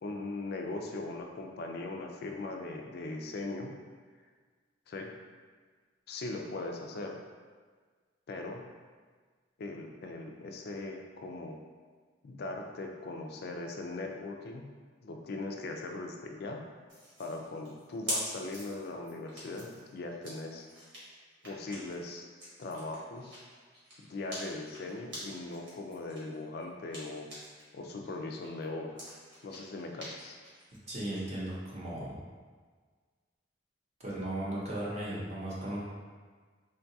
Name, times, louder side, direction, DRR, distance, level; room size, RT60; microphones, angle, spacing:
voice 1, 0.0-3.7 4.9-5.1 6.1-7.2 8.3-8.6 9.6-11.6 12.2-14.6 15.0-16.6 17.2-20.7 21.4-22.3 22.6-23.4 24.0-27.3 27.7-29.0 29.4-30.4, left 2 dB, 55° left, 2 dB, 0.4 m, -39 dB
sound 1, 16.9-27.7 28.0-31.2, equal, 80° right, 1.2 m, -44 dB
voice 2, 30.9-32.2 34.0-35.8, right 1 dB, 35° right, -6 dB, 0.7 m, -36 dB
3.7 x 2.3 x 2.7 m, 1.5 s
head